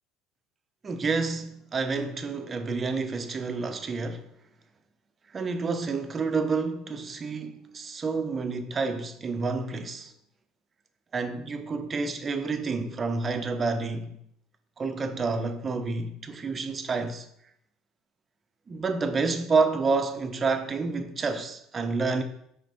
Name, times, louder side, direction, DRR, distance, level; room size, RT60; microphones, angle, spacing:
voice 1, 0.8-4.3 5.3-10.1 11.1-14.2 14.8-17.3 18.7-22.2, right 4 dB, 35° right, 0.8 m, -29 dB
5.9 x 4.5 x 4.2 m
hypercardioid pair, 70°, 0 cm